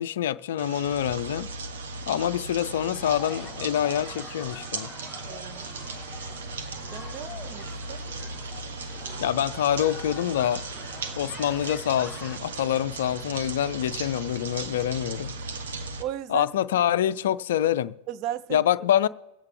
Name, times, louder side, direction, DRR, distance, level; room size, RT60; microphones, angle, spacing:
voice 1, 0.0-1.5 2.1-4.9 9.2-10.7 11.1-15.3 16.3-18.0 18.5-19.1, left 11 dB, 60° left, 0.4 m, -26 dB
sound 1, 0.6-16.0, right 3 dB, 65° right, 1.0 m, -37 dB
sound 2, 2.9-12.4, left 6 dB, 15° left, 0.9 m, -45 dB
voice 2, 5.3-5.6 6.9-8.0 16.0-16.5 18.1-18.6, right 11 dB, 40° right, 0.5 m, -35 dB
22.5 x 8.1 x 3.4 m
figure-of-eight pair, 90°, 0 cm